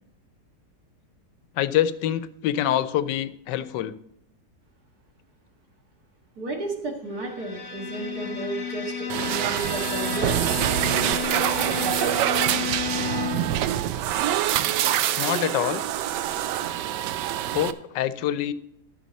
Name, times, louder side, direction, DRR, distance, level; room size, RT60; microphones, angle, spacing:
voice 1, 1.6-4.0 13.3-13.5 15.2-15.8 17.5-18.5, left 11 dB, 85° left, 14 dB, 1.2 m, -25 dB
voice 2, 6.4-10.4, right 3 dB, 60° right, 0 dB, 2.3 m, -32 dB
Bowed string instrument, 7.1-13.6, left 8 dB, 50° left, 1.6 m, -32 dB
sound 1, 9.1-17.7, right 12 dB, 85° right, 1.2 m, -25 dB
12.5 x 6.7 x 4.1 m, 0.78 s
omnidirectional pair, 1.8 m